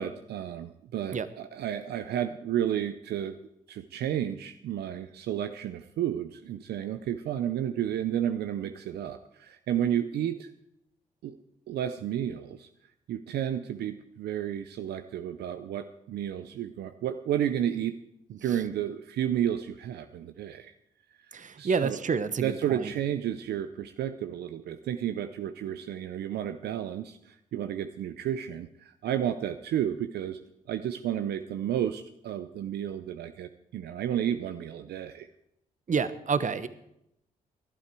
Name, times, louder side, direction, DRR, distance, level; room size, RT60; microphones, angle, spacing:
voice 1, 0.0-3.4 3.7-10.5 11.2-11.4 11.7-12.7 13.1-17.9 18.3-20.7 21.3-22.0 22.4-30.4 30.7-35.3, right 10 dB, 75° right, 10 dB, 0.7 m, -32 dB
voice 2, 21.3-22.9 35.9-36.7, right 5 dB, 50° right, 14 dB, 1.1 m, -29 dB
18.0 x 12.0 x 4.6 m, 0.78 s
supercardioid pair, 50°, 17 cm